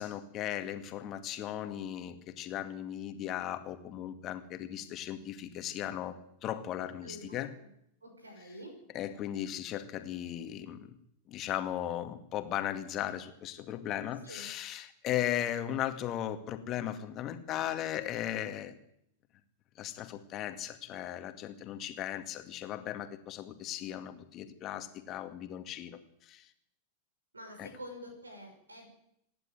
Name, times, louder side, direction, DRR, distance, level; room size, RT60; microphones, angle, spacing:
voice 1, 0.0-6.1 6.4-7.5 8.9-10.9 11.3-18.7 19.8-26.5 27.6-27.7, left 11 dB, 35° left, 8 dB, 2.2 m, -37 dB
voice 2, 7.0-7.7 8.0-8.8 14.2-14.5 27.3-28.9, equal, 75° right, 3 dB, 6.0 m, -47 dB
26.0 x 10.5 x 9.4 m, 0.74 s
figure-of-eight pair, 90°, 0 cm